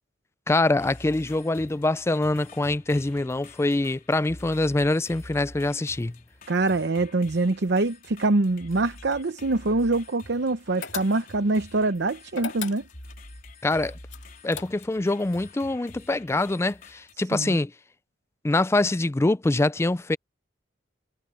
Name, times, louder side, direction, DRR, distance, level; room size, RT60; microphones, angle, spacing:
voice 1, 0.5-6.2 13.6-14.0 14.4-17.7 18.4-20.2, left 2 dB, 15° left, 0.4 m, -24 dB
sound 1, 0.8-17.1, left 2 dB, 50° left, 4.1 m, -48 dB
voice 2, 6.5-12.8 17.3-17.6, right 2 dB, 65° right, 0.8 m, -24 dB
sound 2, 10.8-11.5 12.3-13.2 14.1-15.1, left 7 dB, 85° left, 2.2 m, -37 dB
head